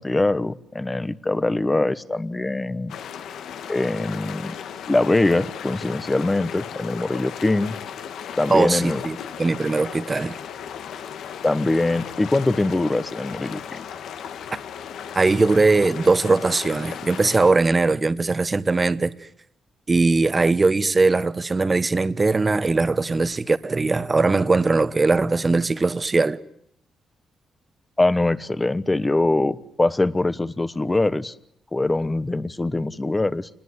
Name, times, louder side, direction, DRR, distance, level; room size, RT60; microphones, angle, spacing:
voice 1, 0.0-2.9 3.7-4.6 4.9-7.8 8.4-9.0 11.4-13.8 28.0-31.3 31.7-33.5, left 2 dB, 15° left, 1.1 m, -23 dB
sound 1, 2.9-17.5, left 8 dB, 85° left, 1.9 m, -36 dB
voice 2, 8.5-10.4 15.1-19.1 19.9-26.4, right 3 dB, 25° right, 1.2 m, -20 dB
28.0 x 19.5 x 9.7 m
cardioid pair, 110°, 0 cm